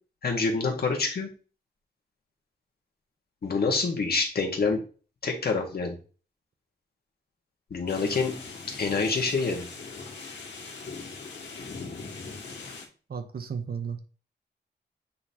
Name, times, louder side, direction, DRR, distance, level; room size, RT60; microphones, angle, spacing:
voice 1, 0.2-1.3 3.4-4.8 5.2-6.0 7.7-8.4 8.8-9.7, left 4 dB, 60° left, 2 dB, 1.6 m, -26 dB
sound 1, 7.9-12.9, left 4 dB, 80° left, 1.9 m, -40 dB
voice 2, 13.1-14.0, right 6 dB, 60° right, 7 dB, 0.9 m, -34 dB
8.6 x 4.0 x 2.9 m, 0.37 s
wide cardioid pair, 145°, 18 cm